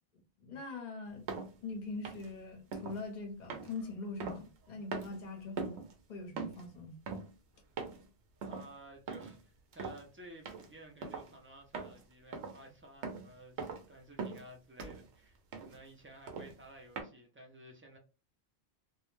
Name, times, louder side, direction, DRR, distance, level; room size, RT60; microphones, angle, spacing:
voice 1, 0.4-1.3 1.6-7.0, left 3 dB, 50° left, 0.8 m, -43 dB
sound 1, 1.3-1.5 2.0-2.3 2.7-3.0 3.5-4.7 4.9-5.2 5.6-5.9 6.4-6.7 7.1-7.3 7.8-8.1 8.4-8.7 9.1-9.4 9.7-10.0 10.5-10.7 11.0-11.3 11.7-12.0 12.3-12.6 13.0-13.3 13.6-13.9 14.2-14.5 14.8-15.1 15.5-15.8 16.3-16.6 17.0-17.1, right 4 dB, 90° right, 0.9 m, -41 dB
voice 2, 8.4-18.0, right 1 dB, 20° right, 0.4 m, -54 dB
2.3 x 2.1 x 3.1 m
omnidirectional pair, 1.1 m